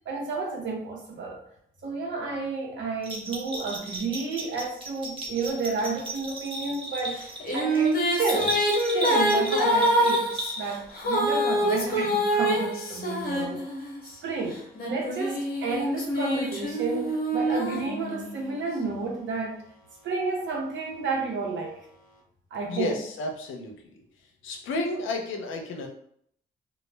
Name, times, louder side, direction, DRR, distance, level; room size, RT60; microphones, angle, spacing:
voice 1, 0.1-1.4 1.8-7.2 7.5-8.6 8.9-13.6 14.2-19.6 20.0-21.8 22.5-23.0, right 4 dB, 70° right, 0 dB, 0.8 m, -31 dB
Bell, 3.0-10.9, right 1 dB, 25° right, 1.0 m, -35 dB
Female singing, 7.1-14.1 14.7-18.5, equal, 50° left, 0.9 m, -26 dB
voice 2, 22.7-23.8 24.4-25.9, left 2 dB, 80° left, 3 dB, 0.5 m, -31 dB
2.3 x 2.0 x 3.2 m, 0.67 s
supercardioid pair, 50°, 20 cm